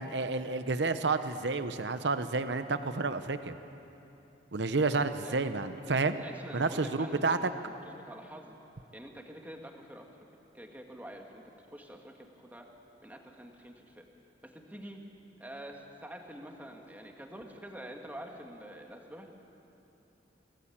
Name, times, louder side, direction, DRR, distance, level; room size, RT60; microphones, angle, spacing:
voice 1, 0.0-3.5 4.5-6.2 6.5-7.4, right 3 dB, 70° right, 10 dB, 0.9 m, -30 dB
voice 2, 6.1-8.6 8.9-10.1 10.5-11.4 11.7-12.7 13.0-14.1 14.4-15.0 15.4-19.3, right 1 dB, 10° right, 2 dB, 2.0 m, -46 dB
23.0 x 17.5 x 8.7 m, 3.0 s
head